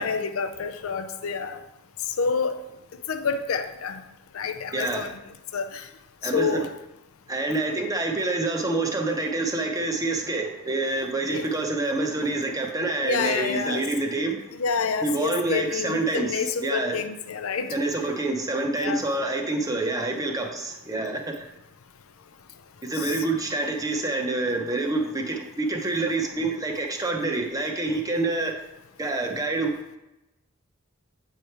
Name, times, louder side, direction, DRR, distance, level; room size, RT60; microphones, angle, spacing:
voice 1, 0.0-1.6 2.2-2.6 3.1-4.0 4.3-5.1 5.5-5.8 6.3-6.7 11.3-11.5 13.0-13.9 14.6-17.7 18.8-19.1 22.9-23.2, left 5 dB, 70° left, 9 dB, 0.5 m, -28 dB
voice 2, 4.7-5.1 6.2-6.6 7.3-14.4 15.0-17.0 17.7-21.5 22.8-28.6 29.0-30.0, right 2 dB, 15° right, 2 dB, 0.8 m, -27 dB
8.3 x 3.3 x 4.5 m, 0.93 s
head